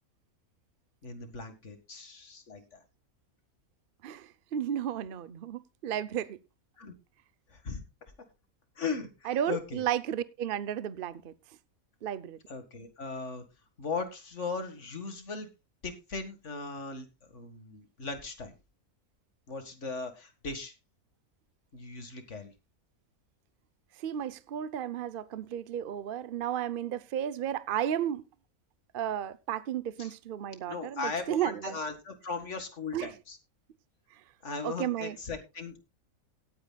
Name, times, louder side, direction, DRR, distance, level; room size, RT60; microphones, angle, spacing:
voice 1, 1.0-2.8 6.8-6.9 7.5-7.8 8.8-9.8 12.5-13.4 13.8-15.5 15.8-17.1 17.3-18.5 19.5-20.7 21.7-22.5 30.0-30.1 30.7-33.4 34.4-35.8, left 4 dB, 55° left, 2.1 m, -38 dB
voice 2, 4.0-6.4 9.3-11.3 12.0-12.4 24.0-28.3 28.9-31.8 32.9-33.1 34.6-35.2, right 10 dB, 50° right, 0.8 m, -33 dB
18.0 x 9.4 x 2.3 m
omnidirectional pair, 1.5 m